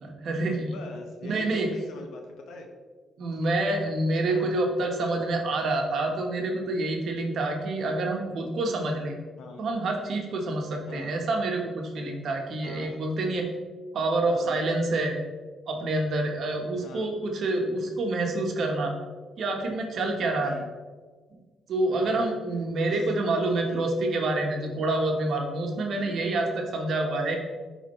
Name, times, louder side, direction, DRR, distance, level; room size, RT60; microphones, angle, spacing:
voice 1, 0.0-0.8 1.2-1.7 3.2-9.1 9.6-13.5 13.9-15.2 15.7-18.9 19.4-20.6 21.7-27.4, right 2 dB, 65° right, 2 dB, 1.2 m, -27 dB
voice 2, 0.6-2.7 3.4-3.6 4.3-4.5 7.8-8.0 9.4-9.6 10.9-11.1 12.6-13.0 14.2-14.6 16.8-17.1 20.4-20.7 22.0-22.2 22.9-23.0 23.6-23.9 25.9-26.3, left 3 dB, 80° left, 2 dB, 0.9 m, -43 dB
10.5 x 3.7 x 3.1 m, 1.4 s
cardioid pair, 80°, 0 cm